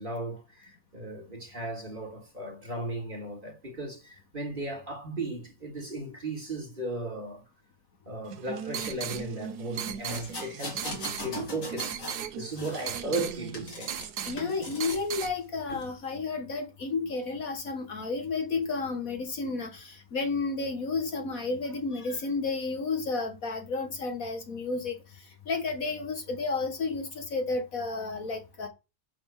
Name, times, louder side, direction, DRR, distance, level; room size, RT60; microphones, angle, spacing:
voice 1, 0.0-7.4 8.1-12.1 12.4-13.9, right 2 dB, 30° right, 2.6 m, -36 dB
sound 1, 8.3-15.3, right 8 dB, 75° right, 1.4 m, -37 dB
sound 2, 10.1-12.2 12.6-14.1 14.4-15.1 15.7-15.9, left 2 dB, 90° left, 4.0 m, -40 dB
voice 2, 14.2-28.7, left 3 dB, 60° left, 1.8 m, -32 dB
8.3 x 4.3 x 7.1 m
omnidirectional pair, 1.7 m